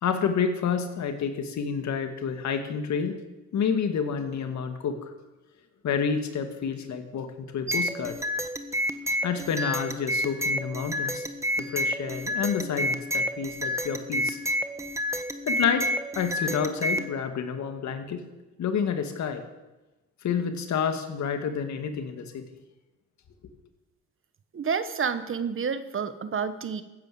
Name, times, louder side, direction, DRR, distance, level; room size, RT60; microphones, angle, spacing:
voice 1, 0.0-3.2 3.5-5.1 5.8-8.2 9.2-11.3 11.6-14.4 15.5-15.9 16.1-18.2 18.6-19.4 20.2-22.4, left 6 dB, 65° left, 6 dB, 2.1 m, -29 dB
sound 1, 7.7-17.1, equal, 10° right, 1.3 m, -29 dB
voice 2, 24.5-26.8, right 6 dB, 45° right, 12 dB, 1.2 m, -29 dB
16.0 x 9.5 x 7.8 m, 1.1 s
cardioid pair, 90°, 30 cm